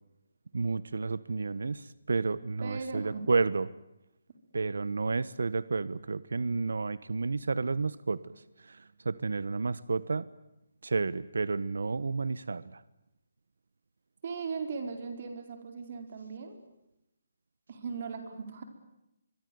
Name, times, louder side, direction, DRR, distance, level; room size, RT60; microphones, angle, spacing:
voice 1, 0.5-3.7 4.5-10.3 10.8-12.8, right 4 dB, 80° right, 18 dB, 1.1 m, -31 dB
voice 2, 2.6-3.3 14.2-16.6 17.7-18.6, right 5 dB, 35° right, 6 dB, 4.6 m, -38 dB
25.5 x 24.0 x 9.5 m, 0.86 s
hypercardioid pair, 175°, 0 cm